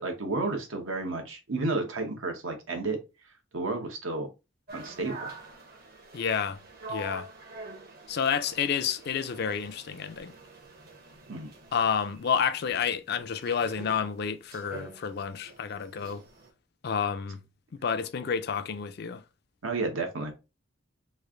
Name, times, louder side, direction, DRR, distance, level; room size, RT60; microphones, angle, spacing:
voice 1, 0.0-3.0 3.5-4.3 4.7-5.3 11.3-11.5 19.6-20.3, right 3 dB, 80° right, 1.0 m, -31 dB
sound 1, 4.7-16.5, right 2 dB, 50° right, 0.9 m, -46 dB
voice 2, 6.1-6.6 6.9-7.3 8.1-10.3 11.7-16.2 16.8-17.4 17.7-19.2, left 7 dB, 55° left, 0.4 m, -30 dB
3.2 x 2.5 x 3.6 m
head